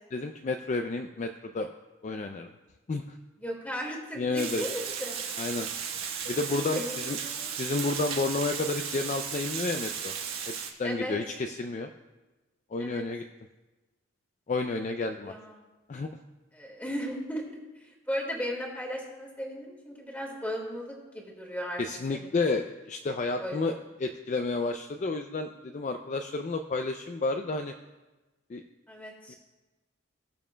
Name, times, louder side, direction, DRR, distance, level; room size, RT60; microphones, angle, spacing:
voice 1, 0.1-1.7 2.0-2.5 2.9-3.2 4.2-4.6 5.4-5.7 6.3-7.2 7.6-10.1 10.5-11.9 12.7-13.2 14.5-15.3 15.9-16.1 21.8-23.7 24.0-27.7 28.5-28.6 29.3-29.4, left 3 dB, 35° left, 5 dB, 0.3 m, -31 dB
voice 2, 3.4-5.2 6.8-7.5 10.8-11.1 12.8-13.0 15.3-15.6 16.5-21.8 22.1-22.3 23.4-23.8 28.9-29.3, equal, 10° left, -1 dB, 1.8 m, -36 dB
Water, 4.4-10.7, right 7 dB, 85° right, 1.2 m, -35 dB
19.5 x 7.2 x 2.2 m, 1.2 s
head